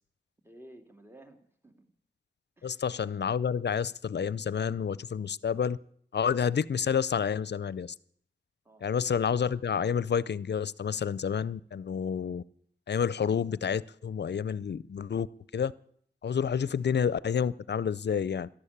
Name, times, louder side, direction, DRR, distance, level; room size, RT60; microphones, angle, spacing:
voice 1, 0.4-1.9 2.6-2.8 8.6-8.9 16.6-16.8, right 1 dB, 15° right, 5 dB, 3.0 m, -54 dB
voice 2, 2.6-5.8 6.1-7.9 8.8-12.4 12.9-15.3 15.5-15.7 16.2-18.5, left 7 dB, 75° left, 20 dB, 0.5 m, -29 dB
14.0 x 11.5 x 8.6 m, 0.63 s
cardioid pair, 50°, 18 cm